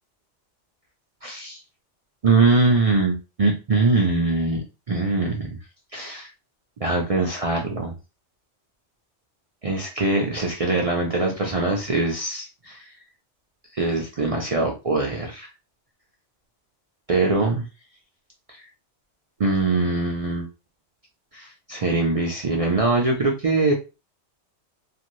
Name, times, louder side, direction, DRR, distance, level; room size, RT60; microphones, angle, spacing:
voice 1, 1.2-1.6 2.2-5.5 5.9-6.3 6.8-7.9 9.6-12.9 13.7-15.5 17.1-17.7 18.6-18.7 19.4-20.5 21.3-23.7, right 3 dB, 60° right, 0 dB, 0.3 m, -22 dB
2.6 x 2.5 x 3.0 m, 0.30 s
omnidirectional pair, 1.2 m